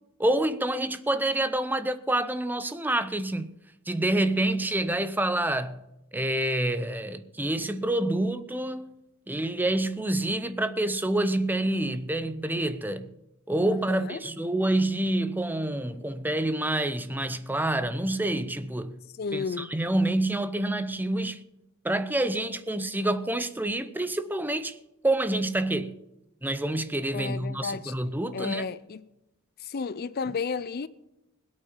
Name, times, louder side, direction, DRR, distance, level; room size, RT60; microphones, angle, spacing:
voice 1, 0.2-3.5 3.9-5.8 6.1-8.9 9.3-13.1 13.5-19.0 19.3-21.4 21.8-24.8 25.0-26.0 26.4-28.7, right 1 dB, 10° right, 0.7 m, -27 dB
voice 2, 13.7-14.2 19.2-19.8 27.1-27.9 28.3-29.0 29.6-30.9, left 5 dB, 45° left, 0.4 m, -33 dB
21.0 x 8.7 x 5.7 m
head